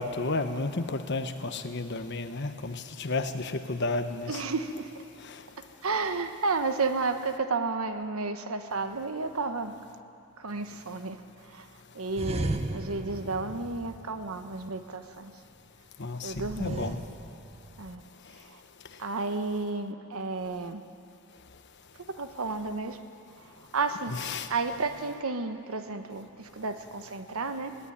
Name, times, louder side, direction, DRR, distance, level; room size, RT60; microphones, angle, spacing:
voice 1, 0.0-4.4 16.0-17.0 24.1-24.5, left 3 dB, 55° left, 8 dB, 1.2 m, -32 dB
voice 2, 4.3-5.0 5.6-9.7 10.4-11.7 11.9-15.3 16.2-16.9 17.8-18.0 18.4-18.6 19.0-20.8 22.1-23.0 23.4-27.8, right 3 dB, 80° right, 8 dB, 1.2 m, -32 dB
sound 1, 12.1-14.8 16.3-18.0, right 1 dB, 30° right, 0.9 m, -36 dB
18.5 x 18.0 x 10.0 m, 2.7 s
head